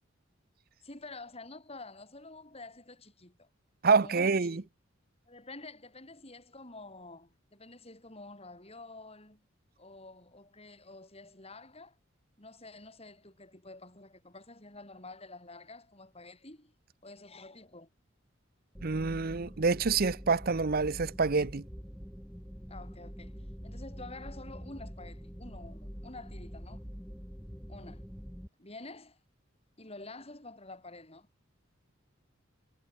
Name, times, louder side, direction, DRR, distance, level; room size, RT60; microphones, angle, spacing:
voice 1, 0.8-3.5 3.9-4.7 5.3-9.5 9.8-12.0 12.4-16.7 17.0-17.9 22.7-26.8 27.7-28.1 28.6-29.2 29.8-31.3, left 2 dB, 30° left, 7.3 m, -49 dB
voice 2, 3.8-4.6 18.8-21.6, right 4 dB, 45° right, 0.7 m, -27 dB
sound 1, 18.7-28.5, equal, ahead, 2.4 m, -45 dB
head